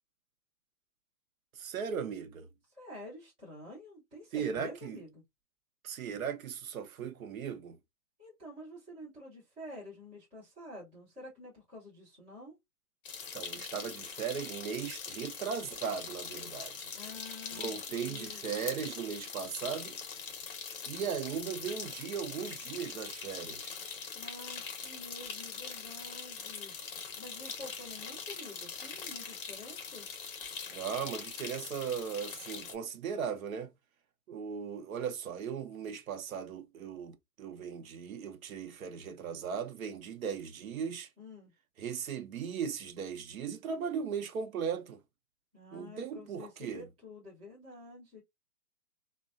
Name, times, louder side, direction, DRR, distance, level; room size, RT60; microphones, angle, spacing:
voice 1, 1.5-2.5 4.3-5.0 5.8-7.8 13.3-16.9 17.5-20.0 20.9-23.8 30.7-33.7 34.3-41.1 41.8-45.0 45.7-46.8, right 7 dB, 65° right, 0.6 m, -37 dB
voice 2, 2.7-5.2 8.2-12.6 16.9-18.7 24.1-30.1 41.2-41.5 45.5-48.2, left 1 dB, 10° right, 0.4 m, -49 dB
sound 1, 13.1-32.7, left 6 dB, 40° left, 0.7 m, -42 dB
3.1 x 2.1 x 2.4 m
hypercardioid pair, 150°, 45 cm